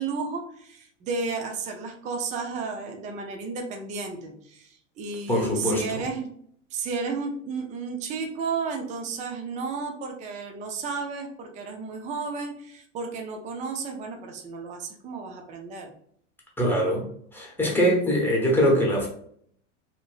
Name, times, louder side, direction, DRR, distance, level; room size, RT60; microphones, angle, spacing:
voice 1, 0.0-6.3 6.7-15.9, right 4 dB, 20° right, 3 dB, 0.4 m, -33 dB
voice 2, 5.3-6.0 16.6-17.1 17.3-19.1, equal, 5° left, -3 dB, 0.9 m, -23 dB
2.9 x 2.6 x 2.4 m, 0.64 s
supercardioid pair, 115°, 37 cm